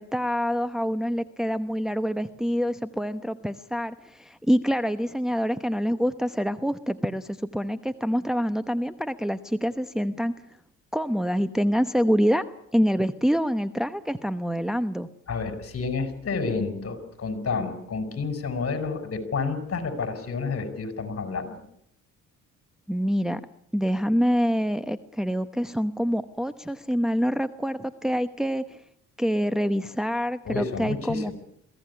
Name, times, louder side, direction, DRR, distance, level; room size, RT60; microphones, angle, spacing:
voice 1, 0.0-10.3 10.9-12.5 12.7-15.1 22.9-23.4 23.7-28.8 29.2-31.3, equal, ahead, 9 dB, 0.9 m, -26 dB
voice 2, 15.3-21.6 30.5-31.3, left 4 dB, 50° left, 10 dB, 5.2 m, -30 dB
22.5 x 16.5 x 9.6 m, 0.73 s
cardioid pair, 90°, 30 cm